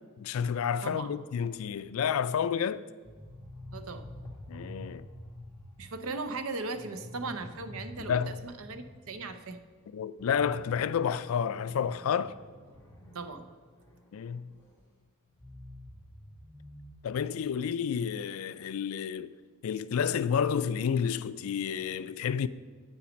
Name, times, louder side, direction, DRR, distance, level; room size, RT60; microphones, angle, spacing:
voice 1, 0.2-2.8 4.5-5.0 8.0-8.4 9.9-12.4 14.1-14.5 17.0-19.3 19.6-22.5, left 7 dB, 70° left, 0.3 m, -30 dB
voice 2, 0.8-1.1 3.7-4.1 5.8-9.6 13.1-13.5, right 3 dB, 70° right, 0.7 m, -38 dB
sound 1, 3.0-9.5 9.8-9.9 10.2-14.8 15.3-16.9, left 1 dB, 10° left, 1.7 m, -48 dB
8.6 x 5.8 x 5.2 m
head